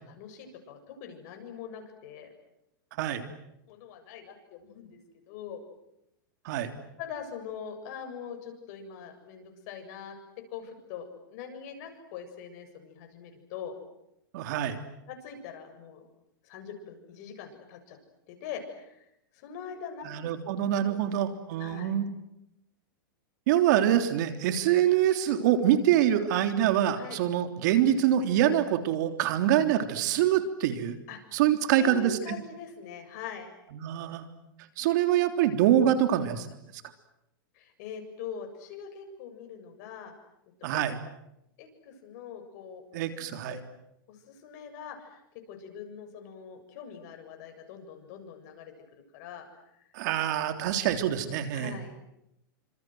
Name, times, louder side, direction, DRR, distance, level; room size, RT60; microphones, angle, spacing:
voice 1, 0.0-2.3 3.7-5.0 5.3-5.6 7.0-10.2 10.5-13.7 15.1-16.0 16.4-18.0 18.3-19.1 19.3-20.1 20.9-21.3 21.6-22.0 27.0-27.2 31.1-31.2 31.7-33.6 37.5-40.1 40.7-40.8 41.6-42.9 43.1-43.2 43.5-43.6 44.1-45.2 45.5-48.7 49.1-49.5 49.7-49.8 51.5-51.9, left 7 dB, 50° left, 5 dB, 7.3 m, -42 dB
voice 2, 14.3-14.8 20.0-22.1 23.5-30.9 31.3-32.4 33.7-34.3 34.8-36.4 40.6-41.0 42.9-43.6 49.9-51.8, right 11 dB, 60° right, 8 dB, 3.4 m, -25 dB
28.5 x 26.5 x 7.9 m, 0.83 s
supercardioid pair, 140°, 11 cm